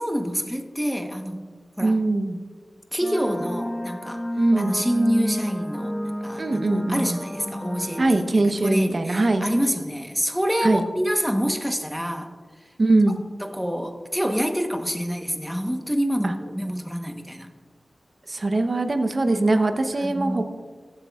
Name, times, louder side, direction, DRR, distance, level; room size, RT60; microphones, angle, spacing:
voice 1, 0.0-1.5 1.8-2.0 2.9-4.2 4.6-5.9 6.2-12.3 13.4-17.5 19.3-19.5 20.0-20.5, equal, ahead, 5 dB, 1.0 m, -27 dB
voice 2, 1.8-2.4 4.4-4.8 6.4-7.2 8.0-9.5 10.6-10.8 12.8-13.2 16.2-16.3 18.3-20.5, right 2 dB, 55° right, 7 dB, 0.8 m, -22 dB
sound 1, 3.0-8.0, equal, 20° left, 1.0 m, -31 dB
14.5 x 7.8 x 2.3 m, 1.5 s
cardioid pair, 45°, 0 cm